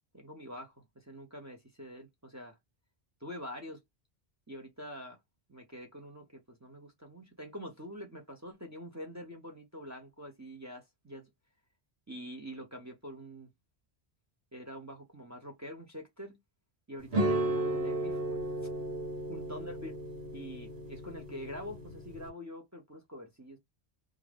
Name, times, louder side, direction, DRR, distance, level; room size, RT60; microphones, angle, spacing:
voice 1, 0.1-2.6 3.2-3.8 4.5-5.2 5.5-11.3 12.1-13.5 14.5-16.4 16.9-18.5 19.3-20.0 20.3-23.6, equal, 20° right, 0.7 m, -45 dB
sound 1, 17.1-22.3, right 1 dB, 90° right, 1.3 m, -34 dB
2.4 x 2.4 x 3.3 m
omnidirectional pair, 1.1 m